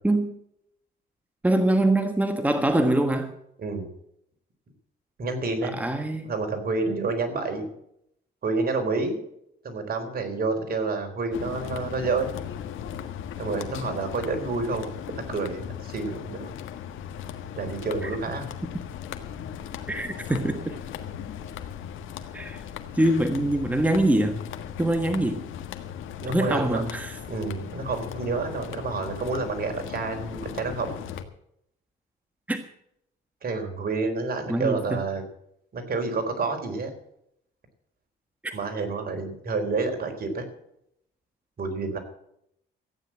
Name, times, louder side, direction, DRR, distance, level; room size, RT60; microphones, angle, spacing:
voice 1, 1.4-3.3 5.6-6.3 18.0-18.1 19.9-20.7 22.3-22.6 22.9-24.4 24.8-25.4 26.3-27.2 32.5-32.6 34.5-35.0 38.4-38.5, right 1 dB, 10° right, 6 dB, 1.4 m, -24 dB
voice 2, 5.2-5.8 6.3-7.6 8.4-9.2 9.6-12.5 13.4-16.5 17.6-18.5 26.2-26.8 27.3-31.0 33.4-35.2 35.7-36.9 38.5-40.4 41.6-42.0, right 3 dB, 50° right, 5 dB, 4.0 m, -29 dB
sound 1, 11.3-31.2, left 9 dB, 85° left, 1.5 m, -38 dB
14.5 x 9.4 x 7.5 m, 0.75 s
cardioid pair, 90°, 20 cm